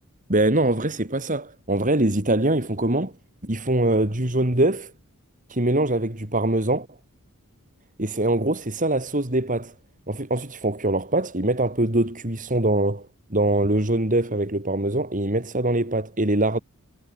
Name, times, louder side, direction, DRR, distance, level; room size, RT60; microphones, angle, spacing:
voice 1, 0.3-3.1 3.4-4.9 5.5-6.9 8.0-9.7 10.1-16.6, right 1 dB, 35° right, 3.1 m, -23 dB
head